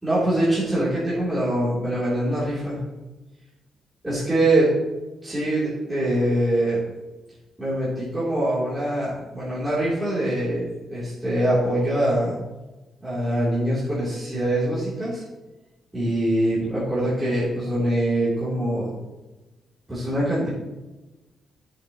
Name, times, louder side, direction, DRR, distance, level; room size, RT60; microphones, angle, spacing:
voice 1, 0.0-2.8 4.0-4.7 5.2-6.8 7.6-12.4 13.0-15.2 15.9-18.9 19.9-20.5, right 1 dB, 10° right, -11 dB, 3.2 m, -23 dB
13.0 x 7.6 x 3.0 m, 1.1 s
wide cardioid pair, 165°, 0 cm